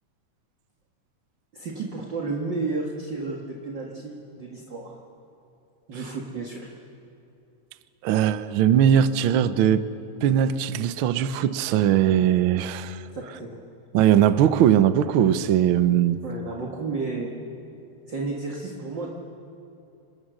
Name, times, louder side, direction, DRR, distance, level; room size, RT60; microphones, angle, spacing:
voice 1, 1.5-4.9 5.9-6.7 13.1-13.6 16.2-17.3 18.1-19.1, right 3 dB, 40° right, -1 dB, 2.3 m, -32 dB
voice 2, 8.0-9.8 10.2-13.0 13.9-16.2, right 10 dB, 80° right, 12 dB, 1.1 m, -20 dB
28.5 x 27.5 x 6.4 m, 2.7 s
omnidirectional pair, 3.5 m